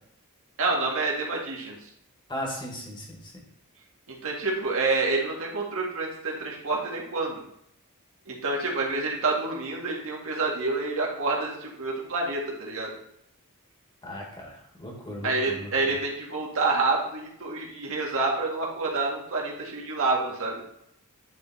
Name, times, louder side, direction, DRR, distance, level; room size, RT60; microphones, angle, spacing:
voice 1, 0.6-1.8 4.1-7.4 8.3-12.9 15.2-20.6, right 3 dB, 65° right, -2 dB, 1.8 m, -28 dB
voice 2, 2.3-3.4 14.0-15.7, equal, 20° left, -1 dB, 1.8 m, -37 dB
9.8 x 3.7 x 4.2 m, 0.74 s
head